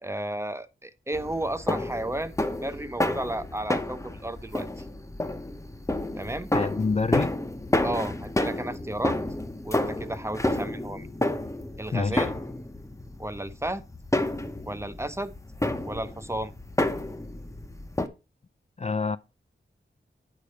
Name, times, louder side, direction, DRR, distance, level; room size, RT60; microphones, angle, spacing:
voice 1, 0.0-2.3 2.6-4.8 6.1-6.5 7.8-9.2 9.6-11.1 11.8-12.3 13.2-13.8 14.7-15.3 15.8-16.5, right 1 dB, 15° right, 0.7 m, -33 dB
sound 1, 1.1-18.1, left 1 dB, 15° left, 0.8 m, -30 dB
voice 2, 6.5-7.4 11.9-12.3 18.8-19.2, left 4 dB, 35° left, 0.4 m, -27 dB
8.2 x 5.0 x 4.2 m
wide cardioid pair, 80°, 20 cm